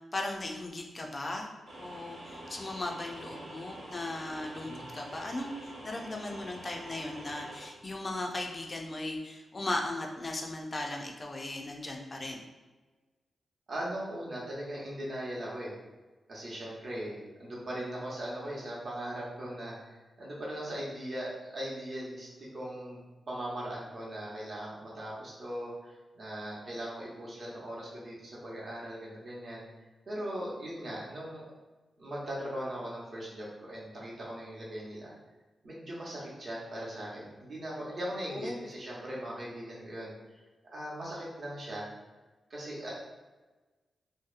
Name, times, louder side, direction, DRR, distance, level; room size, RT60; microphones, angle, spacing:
voice 1, 0.1-1.5 1.8-12.4 38.2-38.6, left 2 dB, 30° left, 1 dB, 0.3 m, -37 dB
sound 1, 1.7-7.7, right 1 dB, 85° right, 0.8 m, -46 dB
voice 2, 13.7-15.7 16.3-23.0 23.3-29.6 30.1-31.4 32.0-35.1 35.6-40.4 40.7-41.9 42.5-42.9, right 1 dB, 45° right, -5 dB, 0.7 m, -39 dB
2.7 x 2.0 x 2.4 m, 1.2 s
wide cardioid pair, 140°, 0 cm